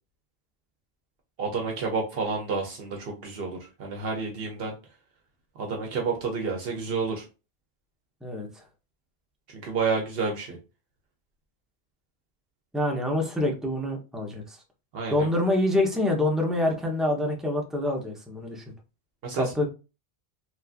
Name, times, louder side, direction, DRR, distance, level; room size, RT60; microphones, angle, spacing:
voice 1, 1.4-4.7 5.6-7.3 9.5-10.6 14.9-15.3 19.2-19.7, right 4 dB, 70° right, 1 dB, 0.8 m, -30 dB
voice 2, 12.7-14.6 15.1-18.6 19.3-19.7, left 1 dB, ahead, 0 dB, 0.4 m, -26 dB
3.0 x 2.3 x 2.4 m, 0.30 s
omnidirectional pair, 1.1 m